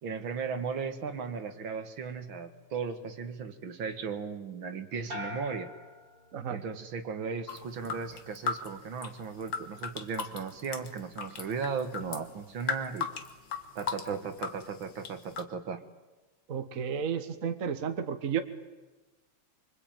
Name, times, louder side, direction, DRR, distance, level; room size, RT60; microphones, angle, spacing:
voice 1, 0.0-5.7 6.5-13.1 13.8-15.8, right 5 dB, 65° right, 9 dB, 2.4 m, -36 dB
sound 1, 5.1-6.8 7.2-7.8, left 2 dB, 25° right, 2.9 m, -44 dB
sound 2, 7.5-15.4, left 6 dB, 60° left, 2.2 m, -37 dB
voice 2, 16.5-18.4, right 7 dB, 45° right, 9 dB, 1.6 m, -32 dB
25.0 x 25.0 x 9.1 m, 1.2 s
omnidirectional pair, 2.3 m